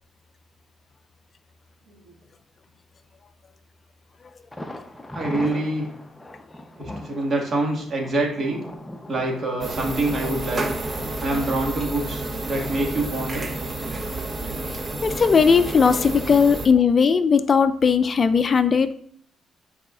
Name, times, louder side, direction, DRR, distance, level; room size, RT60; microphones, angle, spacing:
Thunder, 4.5-12.3 12.6-12.7 13.1-13.2, left 1 dB, 10° left, 0.8 m, -39 dB
voice 1, 5.1-5.9 6.8-8.6 9.1-10.6 11.2-13.5, right 2 dB, 50° right, 0 dB, 1.9 m, -25 dB
sound 1, 9.6-16.7, right 2 dB, 30° right, 1.0 m, -30 dB
voice 2, 15.0-18.9, left 6 dB, 40° left, 12 dB, 0.4 m, -18 dB
9.5 x 4.8 x 2.5 m, 0.62 s
cardioid pair, 90°, 0 cm